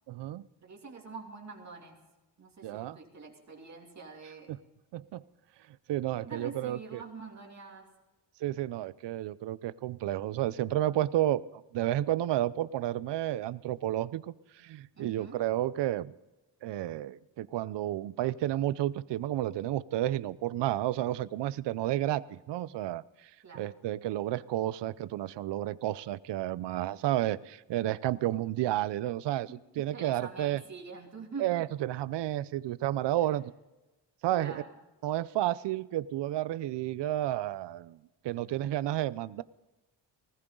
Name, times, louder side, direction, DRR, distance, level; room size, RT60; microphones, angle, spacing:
voice 1, 0.1-0.4 2.6-3.0 4.5-4.6 4.9-5.2 5.9-7.0 8.4-16.1 16.6-23.3 23.6-30.6 31.4-33.5 34.2-34.6 35.0-38.0 38.2-39.4, right 13 dB, 75° right, 18 dB, 0.7 m, -31 dB
voice 2, 0.6-1.9 2.4-4.5 6.2-7.9 14.9-15.4 23.4-23.7 29.5-31.5 34.3-34.7, right 4 dB, 40° right, 0 dB, 2.9 m, -45 dB
20.0 x 15.0 x 3.9 m, 1.0 s
cardioid pair, 110°, 42 cm